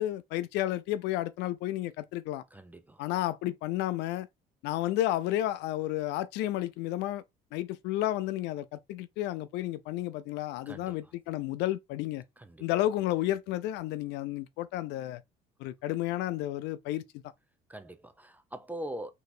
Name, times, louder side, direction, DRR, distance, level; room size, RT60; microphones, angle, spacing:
voice 1, 0.0-2.4 3.0-4.3 4.6-7.2 7.5-12.2 12.6-15.2 15.6-17.1, left 14 dB, 80° left, 0.5 m, -32 dB
voice 2, 2.5-3.0 10.7-11.1 12.4-12.6 17.7-19.1, right 1 dB, 10° right, 0.5 m, -42 dB
3.2 x 3.0 x 4.1 m
cardioid pair, 100°, 17 cm